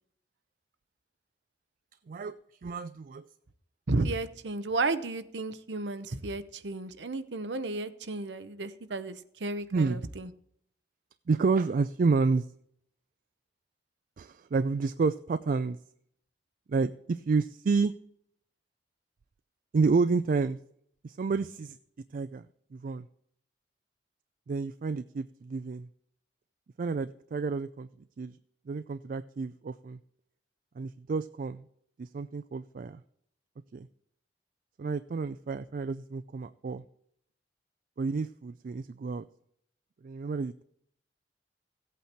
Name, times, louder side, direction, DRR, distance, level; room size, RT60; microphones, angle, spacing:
voice 1, 2.1-3.3 9.7-10.0 11.3-12.5 14.2-15.8 16.7-17.9 19.7-20.6 21.0-21.8 22.1-22.5 22.7-23.1 24.5-25.9 26.8-27.9 28.2-28.4 28.7-30.0 30.8-31.7 32.0-33.0 33.7-33.9 34.8-36.8 38.0-39.3 40.0-40.6, right 4 dB, 50° right, 13 dB, 0.4 m, -30 dB
voice 2, 3.9-10.3, right 3 dB, 75° right, 11 dB, 0.8 m, -33 dB
16.0 x 8.4 x 4.4 m, 0.68 s
head